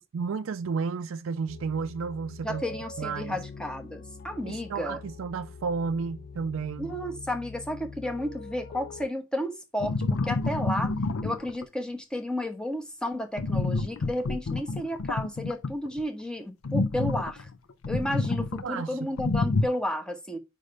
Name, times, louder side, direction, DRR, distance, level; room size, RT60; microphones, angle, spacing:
voice 1, 0.1-2.6 3.0-3.4 4.4-7.0 18.6-19.1, right 5 dB, 70° right, 0.4 m, -32 dB
sound 1, 1.5-9.1, left 4 dB, 45° left, 0.4 m, -44 dB
voice 2, 2.4-5.0 6.8-9.9 10.2-10.9 11.2-17.5 17.9-20.4, left 1 dB, 5° left, 1.0 m, -32 dB
sound 2, 9.8-11.6 13.4-16.0 16.6-18.6 19.2-19.7, left 3 dB, 85° left, 0.6 m, -28 dB
5.3 x 4.9 x 5.3 m
head